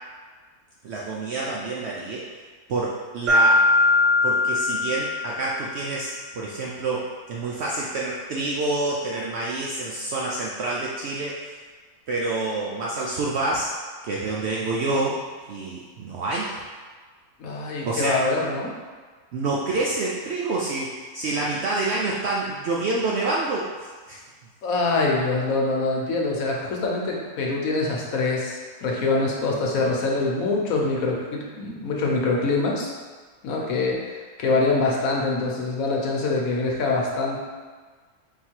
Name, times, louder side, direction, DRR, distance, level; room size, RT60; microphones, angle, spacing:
voice 1, 0.8-2.3 2.7-3.7 4.2-11.6 12.1-13.7 14.0-15.2 15.5-16.5 17.8-18.2 19.3-24.2, right 2 dB, 70° right, -4 dB, 0.6 m, -27 dB
Mallet percussion, 3.3-5.8, left 2 dB, 45° right, 1.2 m, -20 dB
voice 2, 17.4-18.7 24.6-32.9 33.4-37.4, left 3 dB, 70° left, -2 dB, 1.1 m, -24 dB
3.7 x 2.6 x 4.4 m, 1.5 s
omnidirectional pair, 1.5 m